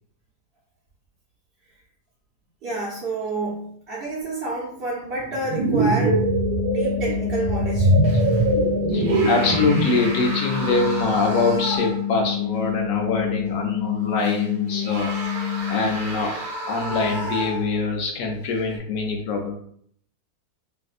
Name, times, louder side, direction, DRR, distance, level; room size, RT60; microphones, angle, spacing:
voice 1, 2.6-6.2 6.6-7.9 15.1-15.3, right 2 dB, 50° right, -6 dB, 0.7 m, -29 dB
sound 1, 5.3-10.1, right 2 dB, 75° right, 1.1 m, -22 dB
sound 2, 5.8-15.8, left 10 dB, 40° left, 0.5 m, -28 dB
sound 3, 8.0-8.5 8.9-12.2 12.6-12.7 14.2-17.9 18.6-18.8, right 1 dB, 90° right, 1.4 m, -33 dB
voice 2, 8.9-15.1 15.7-16.4 16.7-19.5, left 3 dB, 70° left, 2 dB, 1.0 m, -24 dB
3.5 x 2.6 x 2.4 m, 0.63 s
omnidirectional pair, 1.6 m